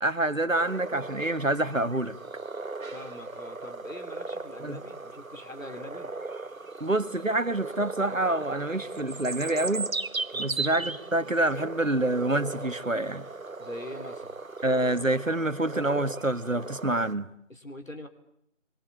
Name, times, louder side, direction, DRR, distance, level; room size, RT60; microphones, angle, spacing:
voice 1, 0.0-2.2 4.6-4.8 6.8-9.9 10.4-13.3 14.6-17.3, right 2 dB, 75° right, 1.9 m, -27 dB
sound 1, 0.5-17.1, right 3 dB, 90° right, 1.2 m, -37 dB
voice 2, 2.9-6.1 10.3-10.7 13.6-14.4 17.5-18.1, left 1 dB, 75° left, 3.5 m, -43 dB
28.5 x 24.0 x 8.7 m
figure-of-eight pair, 175°, 40 cm